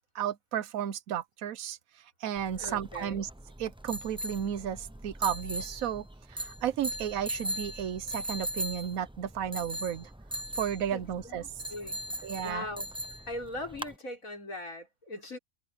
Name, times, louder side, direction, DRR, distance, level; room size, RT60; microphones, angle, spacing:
voice 1, 0.1-1.8 2.2-3.3 3.6-11.4 12.2-12.6, right 9 dB, 80° right, 1.2 m, -33 dB
sound 1, 2.4-14.0, right 1 dB, 5° right, 0.6 m, -39 dB
voice 2, 2.6-3.3 10.9-12.1 12.4-12.9 13.3-15.4, left 1 dB, 75° left, 6.1 m, -40 dB
omnidirectional pair, 1.4 m